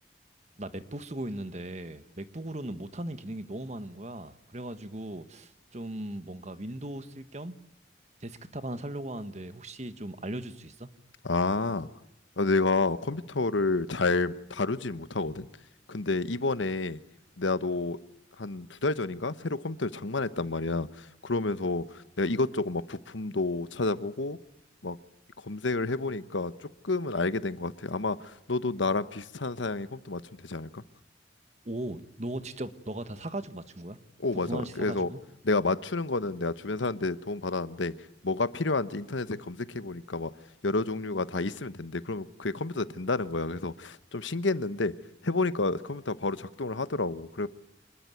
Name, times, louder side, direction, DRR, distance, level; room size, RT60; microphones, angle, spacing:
voice 1, 0.6-7.5 8.2-10.9 31.6-34.0 34.3-35.2, right 1 dB, 35° right, 11 dB, 1.5 m, -38 dB
voice 2, 11.2-11.9 12.4-15.5 15.9-17.0 17.4-18.0 18.4-24.4 24.8-25.0 25.4-26.5 26.8-30.8 34.2-35.1 35.4-37.9 38.2-40.3 40.6-44.9 45.2-47.5, left 3 dB, 80° left, 14 dB, 1.2 m, -30 dB
27.0 x 21.0 x 9.3 m, 0.85 s
head